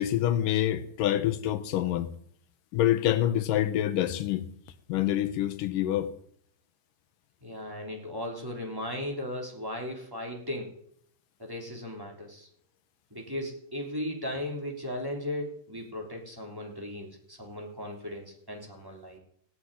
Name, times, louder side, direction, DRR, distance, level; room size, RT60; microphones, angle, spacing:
voice 1, 0.0-2.1 2.7-4.5 4.9-6.1, left 12 dB, 75° left, 2.5 m, -26 dB
voice 2, 7.4-10.8 11.4-12.5 13.1-19.2, left 1 dB, 5° right, 3.0 m, -37 dB
16.5 x 8.0 x 9.9 m
omnidirectional pair, 3.9 m